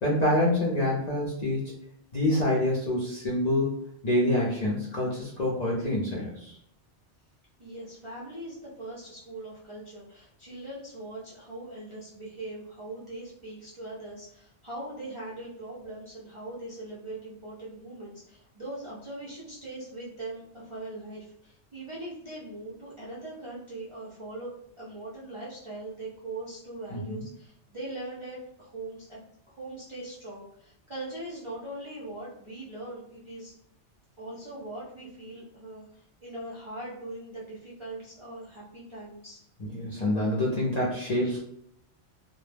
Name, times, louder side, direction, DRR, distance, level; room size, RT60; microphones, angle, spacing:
voice 1, 0.0-1.7 2.1-3.7 4.0-6.6 26.9-27.2 39.6-41.4, left 1 dB, 55° left, -5 dB, 0.5 m, -26 dB
voice 2, 7.6-29.2 29.5-33.5 34.2-39.4 41.2-41.4, right 2 dB, 40° right, -7 dB, 0.4 m, -41 dB
2.1 x 2.0 x 3.2 m, 0.71 s
omnidirectional pair, 1.2 m